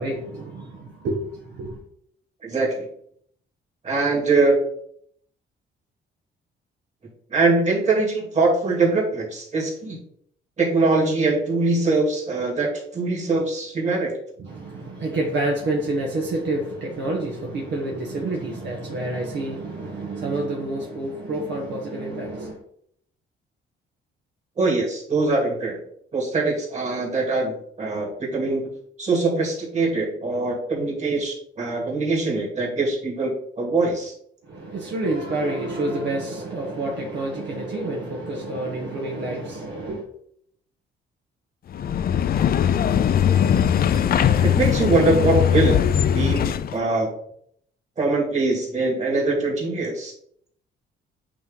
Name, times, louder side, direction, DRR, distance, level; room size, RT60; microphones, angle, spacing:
voice 1, 0.0-1.8 14.4-22.6 34.4-40.0, right 2 dB, 65° right, -2 dB, 1.3 m, -28 dB
voice 2, 2.4-2.9 3.8-4.6 7.3-10.0 10.6-14.1 24.6-25.8 26.1-28.7 29.0-34.1 44.4-45.8 46.1-47.1 48.0-50.1, right 3 dB, 35° right, -2 dB, 2.5 m, -22 dB
sound 1, 41.7-46.8, left 9 dB, 50° left, 0.5 m, -20 dB
8.6 x 3.1 x 3.8 m, 0.68 s
cardioid pair, 90°, 20 cm